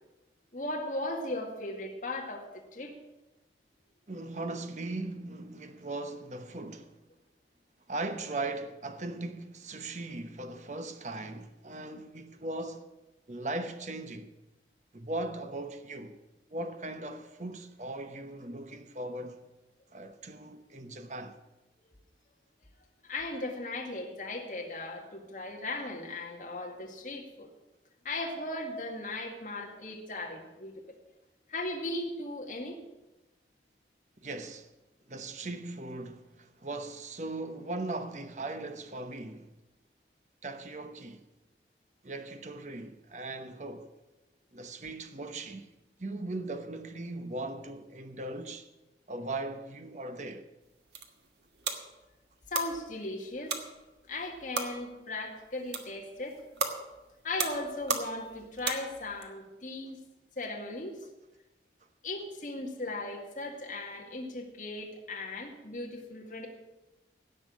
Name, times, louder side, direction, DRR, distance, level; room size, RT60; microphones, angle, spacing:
voice 1, 0.5-2.9 23.1-27.5 28.0-31.0 31.5-32.8 52.5-53.6 54.1-56.4 57.2-60.0 60.4-60.9 62.0-66.5, left 2 dB, 45° left, 2.1 m, -37 dB
voice 2, 4.1-7.0 7.9-12.9 13.3-14.3 14.9-16.2 16.5-19.4 19.9-21.4 34.2-34.7 35.1-39.5 40.4-41.2 42.0-43.9 44.5-45.7 46.0-48.7 49.1-50.5, right 2 dB, 40° right, 1.0 m, -39 dB
sound 1, 50.6-59.3, right 5 dB, 75° right, 1.6 m, -38 dB
17.0 x 6.0 x 8.5 m
head